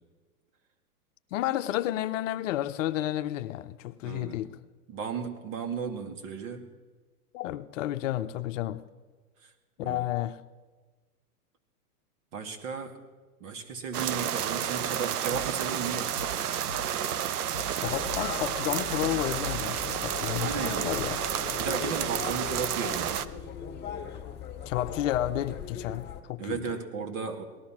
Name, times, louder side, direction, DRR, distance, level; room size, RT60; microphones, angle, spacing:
voice 1, 1.3-4.5 7.3-8.8 9.8-10.4 17.8-21.2 24.7-26.8, left 13 dB, 55° left, 0.7 m, -31 dB
voice 2, 4.0-4.4 4.9-6.6 9.4-9.5 9.8-10.1 12.3-13.0 13.4-16.1 19.9-20.0 20.4-21.0 21.6-23.3 26.4-27.4, right 6 dB, 50° right, 2.5 m, -35 dB
sound 1, 13.9-23.3, right 9 dB, 70° right, 0.9 m, -31 dB
Drum kit, 15.3-15.8 16.2-17.2 17.5-18.6 18.9-20.0 20.3-20.5, right 1 dB, 90° right, 2.9 m, -42 dB
sound 2, 17.8-26.2, left 8 dB, 20° left, 1.8 m, -39 dB
18.5 x 13.0 x 6.0 m
hypercardioid pair, 130°, 47 cm